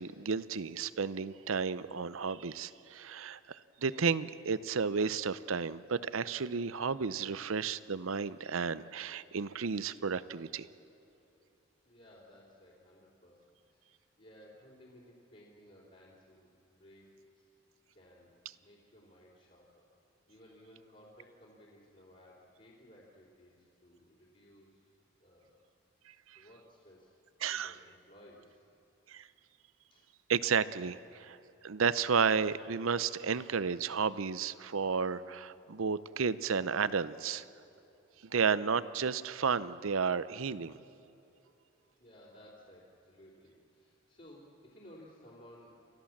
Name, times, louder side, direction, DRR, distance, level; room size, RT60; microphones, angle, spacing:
voice 1, 0.0-10.7 26.1-26.4 27.4-27.7 29.1-29.3 30.3-31.4 31.6-37.5 38.2-40.8, right 5 dB, 75° right, 16 dB, 0.6 m, -32 dB
voice 2, 11.8-17.4 17.9-19.9 20.3-24.9 25.2-25.6 26.3-27.1 27.5-28.6 29.9-30.1 42.0-45.7, equal, 40° left, -7 dB, 3.5 m, -58 dB
29.5 x 14.0 x 7.3 m, 2.8 s
head